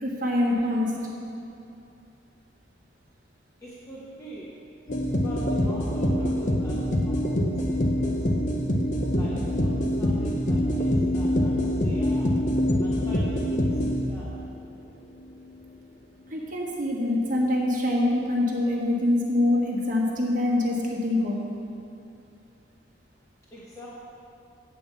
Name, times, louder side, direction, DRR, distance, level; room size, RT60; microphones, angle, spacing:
voice 1, 0.0-0.9 16.3-21.4, left 1 dB, 40° right, -3 dB, 1.4 m, -24 dB
voice 2, 3.6-4.5 5.2-8.1 9.1-12.3 12.8-14.3 23.5-23.9, right 1 dB, 15° left, -7 dB, 1.0 m, -43 dB
sound 1, 4.9-14.4, equal, 40° left, 0.7 m, -25 dB
8.6 x 5.2 x 6.8 m, 2.6 s
head